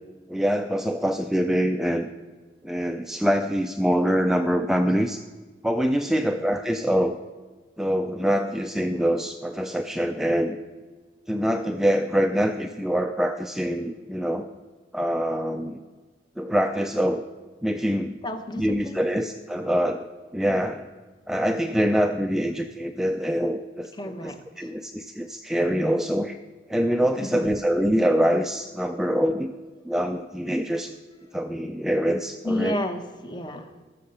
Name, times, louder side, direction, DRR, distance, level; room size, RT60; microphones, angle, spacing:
voice 1, 0.3-2.1 2.6-5.2 5.6-7.2 7.8-10.6 11.3-14.5 14.9-15.8 16.4-17.2 17.6-18.1 18.6-20.1 20.3-20.9 21.3-26.4 26.7-29.5 29.9-30.9 31.3-32.8, equal, 5° right, 5 dB, 0.3 m, -24 dB
voice 2, 18.2-19.1 23.9-24.7 27.2-27.5 32.4-33.8, left 1 dB, 25° left, 8 dB, 0.8 m, -32 dB
14.0 x 5.7 x 6.7 m, 1.4 s
head